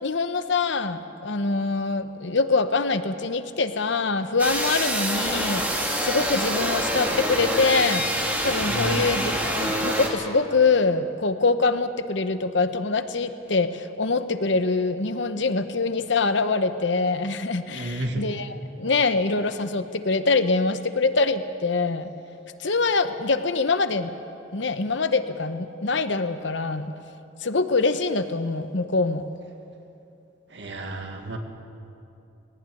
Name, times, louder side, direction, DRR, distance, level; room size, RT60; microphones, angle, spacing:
voice 1, 0.0-8.0 8.4-22.1 22.6-24.1 24.5-26.9 27.4-29.2, left 3 dB, 65° left, 10 dB, 0.9 m, -24 dB
sound 1, 4.4-10.1, right 1 dB, 10° right, 2.3 m, -26 dB
voice 2, 8.7-9.0 17.7-18.3 30.5-31.4, right 2 dB, 60° right, 4 dB, 2.0 m, -31 dB
19.0 x 18.0 x 9.3 m, 2.7 s
head